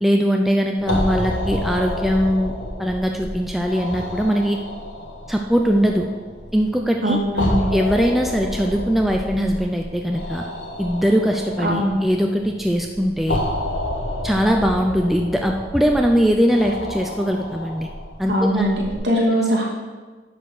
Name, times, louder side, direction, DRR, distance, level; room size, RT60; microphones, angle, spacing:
voice 1, 0.0-2.5 2.8-4.6 5.3-6.1 6.5-7.2 7.7-10.4 10.8-13.4 14.2-17.9 18.2-18.7, equal, ahead, 1 dB, 0.4 m, -20 dB
sound 1, 0.8-19.0, left 1 dB, 70° left, 1.5 m, -30 dB
voice 2, 7.0-7.7 11.6-12.0 18.3-19.6, equal, 60° right, -3 dB, 2.3 m, -20 dB
10.0 x 4.4 x 6.4 m, 1.4 s
head